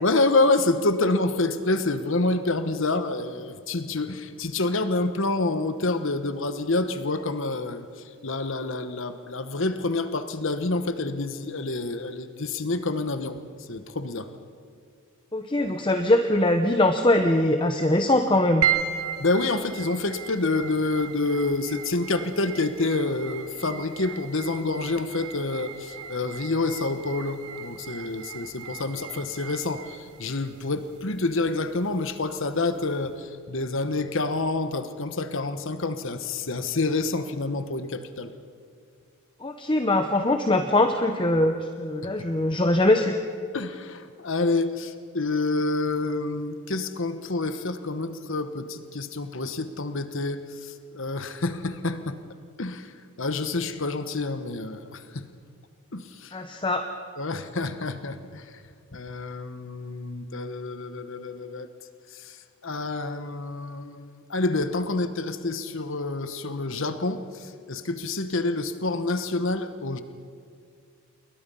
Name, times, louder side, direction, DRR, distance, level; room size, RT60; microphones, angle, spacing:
voice 1, 0.0-7.9 8.2-13.4 13.7-14.3 19.2-38.3 42.0-42.1 43.5-52.2 52.6-52.9 53.2-55.3 55.9-56.4 57.2-58.5 58.9-61.7 62.1-62.4 62.6-70.0, left 2 dB, 60° left, 10 dB, 1.1 m, -28 dB
voice 2, 15.3-18.7 39.4-43.1 56.3-56.8, left 1 dB, 20° left, 6 dB, 0.9 m, -22 dB
sound 1, 18.6-33.1, right 9 dB, 85° right, 1.0 m, -36 dB
29.0 x 22.0 x 5.6 m, 2.3 s
head